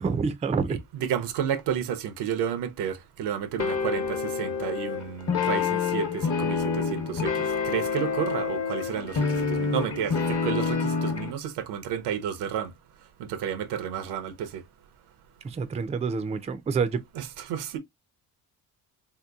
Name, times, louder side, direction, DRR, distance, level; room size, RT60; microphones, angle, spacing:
voice 1, 0.0-0.8 15.4-17.0, right 5 dB, 20° right, 0.4 m, -27 dB
voice 2, 0.7-12.7 13.2-14.6 17.2-17.8, right 9 dB, 90° right, 0.7 m, -31 dB
sound 1, 3.6-11.3, left 5 dB, 40° left, 0.9 m, -27 dB
3.3 x 2.9 x 2.3 m
cardioid pair, 90°, 39 cm